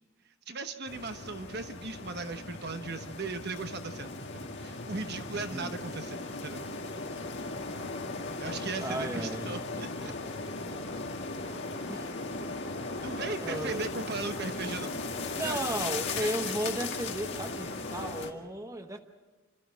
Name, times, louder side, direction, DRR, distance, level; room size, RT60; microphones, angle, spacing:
voice 1, 0.5-6.7 8.4-10.1 13.0-15.0 15.3-15.6 16.2-16.5, right 3 dB, 50° right, 8 dB, 1.1 m, -38 dB
sound 1, 0.9-18.3, left 3 dB, 55° left, 2.0 m, -37 dB
voice 2, 5.3-5.8 8.8-9.7 11.9-12.1 13.0-14.0 15.3-19.0, right 1 dB, 15° right, 6 dB, 1.0 m, -35 dB
30.0 x 13.0 x 7.8 m, 1.3 s
head